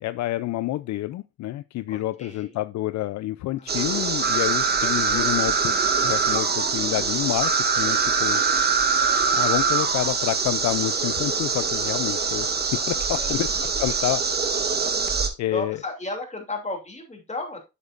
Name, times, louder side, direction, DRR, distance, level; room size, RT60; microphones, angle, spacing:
voice 1, 0.0-5.7 6.0-7.5 7.8-8.4 9.3-14.2 15.4-15.8, left 15 dB, 65° left, 0.4 m, -28 dB
voice 2, 1.9-2.6 3.6-5.4 7.0-7.7 13.1-14.0 15.5-17.6, left 2 dB, 25° left, 2.7 m, -36 dB
sound 1, 3.7-15.3, right 5 dB, 35° right, 1.3 m, -23 dB
8.0 x 7.2 x 2.5 m
cardioid pair, 90°, 30 cm